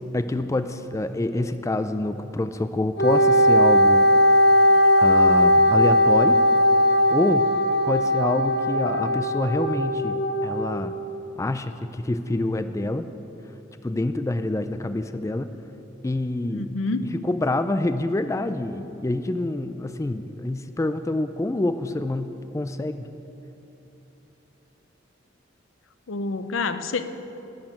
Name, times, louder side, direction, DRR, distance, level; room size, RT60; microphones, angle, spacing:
voice 1, 0.1-4.0 5.0-6.4 7.1-7.5 7.8-10.9 11.4-13.1 13.8-15.5 16.0-16.7 17.0-23.1, left 2 dB, 15° left, 10 dB, 0.3 m, -26 dB
Wind instrument woodwind instrument, 3.0-10.7, equal, 55° left, 0.7 m, -18 dB
voice 2, 16.5-17.1 26.1-27.0, left 3 dB, 90° left, 11 dB, 0.6 m, -27 dB
11.5 x 6.5 x 8.9 m, 3.0 s
head